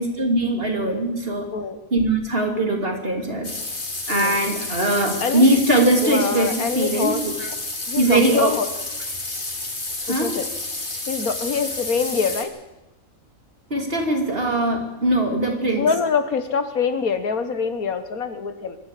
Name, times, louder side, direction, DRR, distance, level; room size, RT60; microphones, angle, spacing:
voice 1, 0.0-1.5 1.9-3.5 4.1-7.5 8.0-8.5 10.1-10.3 13.7-15.9, right 1 dB, 40° right, 3 dB, 3.2 m, -21 dB
sound 1, 3.4-12.4, left 2 dB, 35° left, 2.7 m, -30 dB
voice 2, 6.0-7.2 7.9-8.7 10.0-10.5 11.1-12.5 15.8-18.8, left 5 dB, 80° left, 9 dB, 1.9 m, -24 dB
24.5 x 12.5 x 8.5 m, 0.98 s
omnidirectional pair, 1.5 m